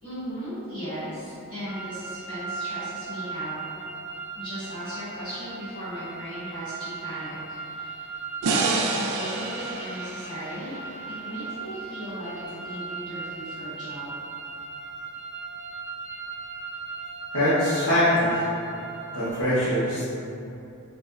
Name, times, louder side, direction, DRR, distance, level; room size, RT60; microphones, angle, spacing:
voice 1, 0.0-3.6 4.3-8.2 9.0-10.8 11.2-14.1, equal, 20° left, -17 dB, 1.3 m, -37 dB
sound 1, 1.7-19.3, right 4 dB, 40° left, 1.2 m, -38 dB
sound 2, 8.4-11.7, right 3 dB, 80° right, 0.4 m, -29 dB
voice 2, 17.3-18.4 19.1-20.1, equal, 70° left, -14 dB, 1.0 m, -22 dB
3.9 x 2.4 x 2.5 m, 2.7 s
head